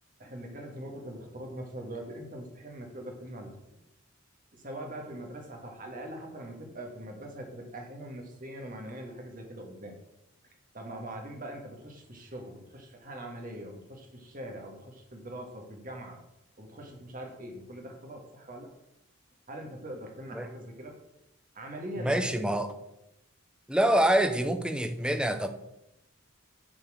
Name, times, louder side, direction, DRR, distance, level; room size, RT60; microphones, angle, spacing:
voice 1, 0.2-3.8 4.5-10.0 10.7-16.2 16.6-18.7 19.5-21.0 21.5-22.2, right 1 dB, 40° right, 2 dB, 1.8 m, -42 dB
voice 2, 22.0-22.8 23.7-25.5, right 1 dB, 5° right, 7 dB, 0.6 m, -26 dB
10.5 x 4.3 x 6.4 m, 0.87 s
head